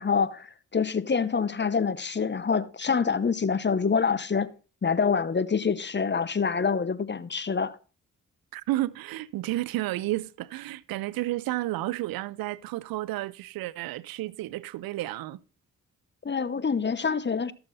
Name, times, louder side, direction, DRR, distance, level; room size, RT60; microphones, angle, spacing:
voice 1, 0.0-4.5 4.8-7.8 16.2-17.5, left 5 dB, 30° left, 0.9 m, -26 dB
voice 2, 8.5-15.4, right 17 dB, 90° right, 0.5 m, -31 dB
13.5 x 6.8 x 4.0 m
supercardioid pair, 50°, 34 cm